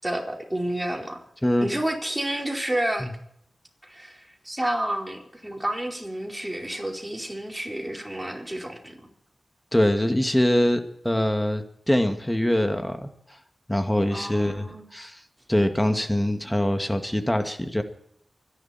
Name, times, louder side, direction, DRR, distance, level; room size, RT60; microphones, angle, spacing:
voice 1, 0.0-1.2 1.6-3.1 3.8-9.1 14.1-14.8, right 1 dB, 10° right, 1 dB, 4.6 m, -30 dB
voice 2, 9.7-13.1 13.7-14.7 14.9-15.2 15.5-17.8, left 1 dB, 10° left, 7 dB, 2.3 m, -23 dB
25.0 x 11.5 x 4.5 m, 0.69 s
cardioid pair, 50°, 0 cm